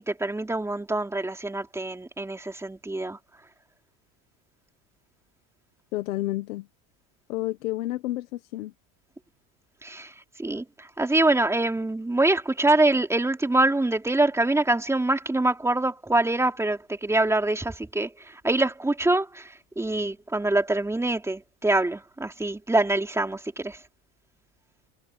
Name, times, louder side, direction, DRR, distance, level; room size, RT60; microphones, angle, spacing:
voice 1, 0.0-3.2 9.8-23.8, right 2 dB, 5° right, 3.2 m, -25 dB
voice 2, 5.9-6.7 7.3-8.7, left 16 dB, 90° left, 1.5 m, -30 dB
supercardioid pair, 125°, 40 cm